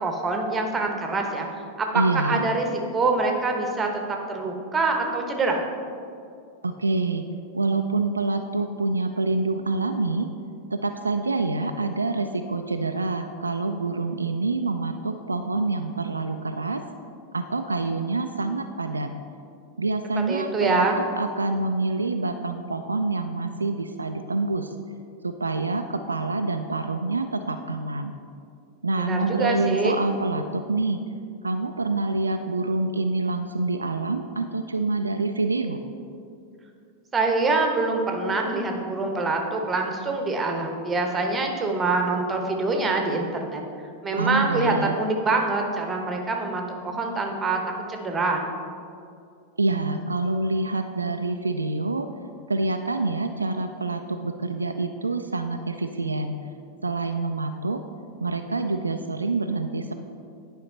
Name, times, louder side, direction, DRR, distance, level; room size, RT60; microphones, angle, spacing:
voice 1, 0.0-1.5 1.8-2.7 2.9-3.9 4.3-5.6 20.3-21.0 29.0-30.0 37.1-43.6 44.0-47.6 47.9-48.5, right 3 dB, 15° right, 3 dB, 1.0 m, -25 dB
voice 2, 1.9-2.4 6.6-7.3 7.5-10.3 10.7-16.8 17.3-19.1 19.8-20.8 21.2-24.7 25.2-28.1 28.8-31.0 31.4-35.8 44.2-45.0 49.6-52.1 52.5-56.3 56.8-57.8 58.2-59.9, right 3 dB, 80° right, 6 dB, 0.3 m, -26 dB
10.0 x 5.1 x 3.9 m, 2.4 s
figure-of-eight pair, 90°, 0 cm